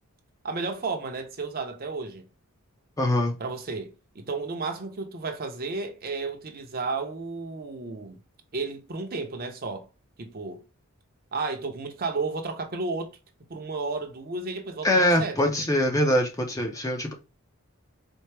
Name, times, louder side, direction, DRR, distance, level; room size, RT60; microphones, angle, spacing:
voice 1, 0.4-2.2 3.4-8.2 8.5-9.9 10.2-10.6 11.3-13.1 13.5-15.5, right 3 dB, 45° right, 0.6 m, -32 dB
voice 2, 3.0-3.3 14.8-17.1, left 1 dB, 15° left, 0.5 m, -23 dB
4.4 x 2.1 x 3.2 m
head